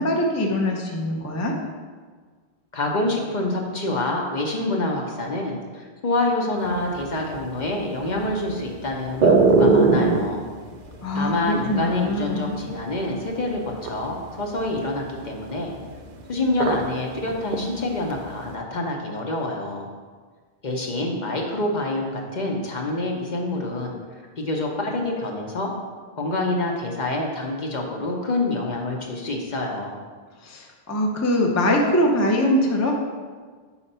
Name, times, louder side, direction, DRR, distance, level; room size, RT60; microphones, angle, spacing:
voice 1, 0.0-1.5 11.0-12.6 30.4-32.9, left 1 dB, 20° left, 0 dB, 0.5 m, -22 dB
voice 2, 2.7-10.4 11.1-15.7 16.3-19.9 20.6-24.0 24.4-25.7 26.2-30.0, left 2 dB, 50° left, 0 dB, 0.8 m, -27 dB
sound 1, 6.7-13.2 13.5-17.0 17.3-18.5, right 3 dB, 55° right, 0.6 m, -20 dB
4.9 x 4.3 x 5.4 m, 1.5 s
omnidirectional pair, 1.1 m